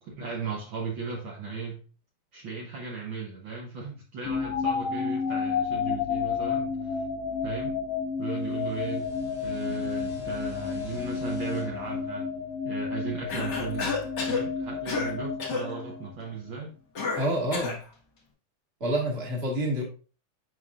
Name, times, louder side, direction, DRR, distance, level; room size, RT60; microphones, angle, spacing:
voice 1, 0.0-1.8 2.3-7.0 7.4-7.8 8.2-9.1 9.4-12.3 12.6-14.0 14.3-16.8, right 4 dB, 70° right, -1 dB, 1.1 m, -36 dB
sound 1, 4.3-16.4, left 6 dB, 75° left, 1.4 m, -31 dB
sound 2, 8.2-13.5, right 1 dB, 20° left, 0.6 m, -46 dB
Cough, 13.3-14.4 14.9-15.1 15.4-15.7 17.0-17.8, left 4 dB, 45° left, 1.5 m, -30 dB
voice 2, 17.1-17.8 18.8-19.8, right 1 dB, 25° right, -1 dB, 1.5 m, -27 dB
7.9 x 5.3 x 2.4 m, 0.36 s
omnidirectional pair, 3.5 m